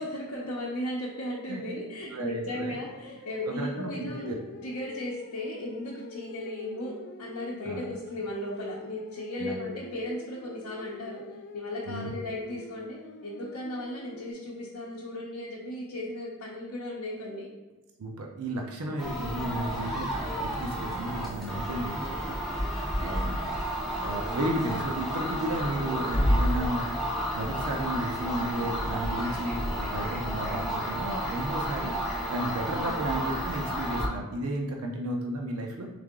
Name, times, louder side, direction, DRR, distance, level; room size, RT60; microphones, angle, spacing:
voice 1, 0.0-11.2 11.5-17.5 18.9-19.0 22.7-23.1 32.7-33.1, left 1 dB, 90° left, -5 dB, 0.7 m, -36 dB
voice 2, 2.1-2.8 3.5-4.4 7.6-7.9 9.4-9.6 11.9-12.1 18.0-23.4 24.0-26.9 27.3-35.9, right 1 dB, 75° right, 1 dB, 0.6 m, -33 dB
sound 1, 2.5-14.3, left 5 dB, 50° left, 0.3 m, -46 dB
sound 2, 19.0-34.1, equal, ahead, 0.6 m, -31 dB
3.6 x 3.4 x 3.6 m, 1.2 s
head